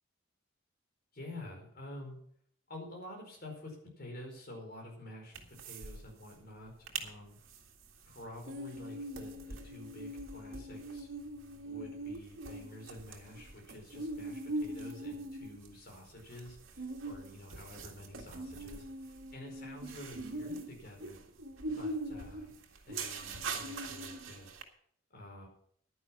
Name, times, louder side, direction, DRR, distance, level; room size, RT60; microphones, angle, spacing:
voice 1, 1.1-2.2 2.7-7.4 8.0-11.1 11.6-21.2 21.7-22.5 22.9-24.5 25.1-25.5, left 1 dB, 50° left, 1 dB, 4.7 m, -49 dB
sound 1, 5.3-6.0 6.2-6.3 6.7-7.1 7.5-24.6, right 2 dB, 85° right, 2.0 m, -42 dB
11.0 x 10.0 x 6.0 m, 0.62 s
head